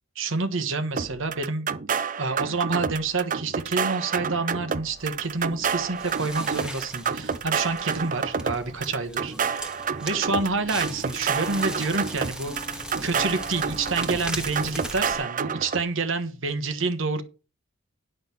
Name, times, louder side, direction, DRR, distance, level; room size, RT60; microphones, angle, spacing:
voice 1, 0.1-1.7 2.2-9.3 10.0-17.2, right 3 dB, 65° right, 1.3 m, -28 dB
sound 1, 1.0-15.8, right 6 dB, 40° right, 0.6 m, -29 dB
Crackle, 5.0-15.2, right 1 dB, 5° right, 1.3 m, -38 dB
11.0 x 5.6 x 5.9 m
head